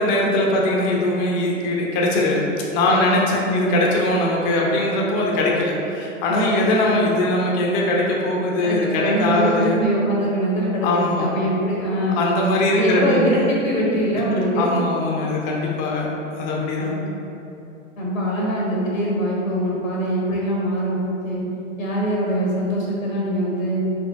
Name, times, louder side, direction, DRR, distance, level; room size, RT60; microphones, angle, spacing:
voice 1, 0.0-2.4 2.7-9.8 10.8-11.3 12.2-13.3 14.6-16.0 16.4-16.9, left 1 dB, 30° left, -2 dB, 0.5 m, -21 dB
voice 2, 2.9-3.7 6.3-6.7 8.6-12.3 12.7-14.7 16.8-17.1 18.0-21.0 21.2-21.4 21.8-23.8, equal, 85° left, -4 dB, 1.3 m, -23 dB
4.2 x 3.4 x 2.8 m, 2.8 s
figure-of-eight pair, 105°, 39 cm